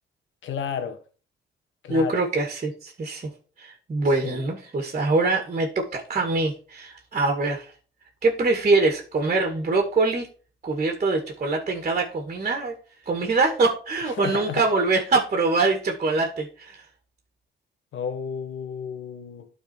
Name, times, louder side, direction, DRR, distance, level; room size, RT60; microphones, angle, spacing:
voice 1, 0.4-1.0 1.8-2.2 4.2-4.4 14.2-14.6 17.9-19.5, left 7 dB, 75° left, 1.4 m, -32 dB
voice 2, 1.9-3.3 3.6-7.7 8.2-10.3 10.6-12.7 13.1-16.8, right 3 dB, 35° right, 1.9 m, -24 dB
12.0 x 4.3 x 4.4 m
cardioid pair, 90°, 20 cm